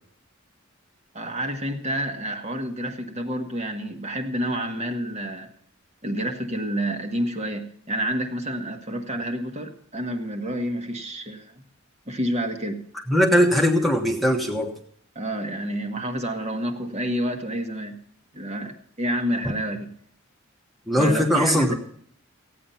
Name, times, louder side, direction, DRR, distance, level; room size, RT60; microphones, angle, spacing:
voice 1, 1.1-5.5 6.0-11.6 12.1-12.8 15.1-18.0 18.3-19.9 21.0-21.7, equal, 30° right, 4 dB, 1.5 m, -29 dB
voice 2, 13.1-14.7 20.9-21.7, equal, ahead, 1 dB, 1.3 m, -20 dB
15.5 x 9.2 x 5.7 m, 0.63 s
head